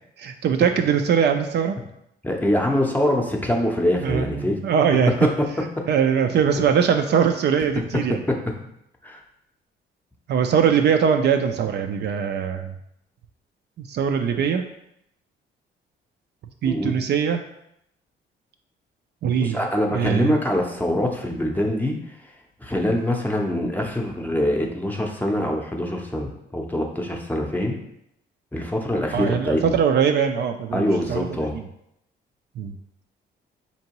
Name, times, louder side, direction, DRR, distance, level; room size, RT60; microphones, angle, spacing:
voice 1, 0.2-1.8 4.0-5.1 5.9-8.2 10.3-12.8 13.8-14.6 16.6-17.4 19.2-19.6 19.9-20.3 29.1-31.3 31.5-31.6 32.6-32.8, right 7 dB, 60° right, 6 dB, 0.4 m, -21 dB
voice 2, 2.2-4.6 5.2-5.5 9.0-9.2 16.6-16.9 19.4-22.0 22.6-27.8 28.5-29.8 30.7-31.5, left 1 dB, 10° left, 1 dB, 0.6 m, -24 dB
4.4 x 2.8 x 2.9 m, 0.77 s
cardioid pair, 90°, 20 cm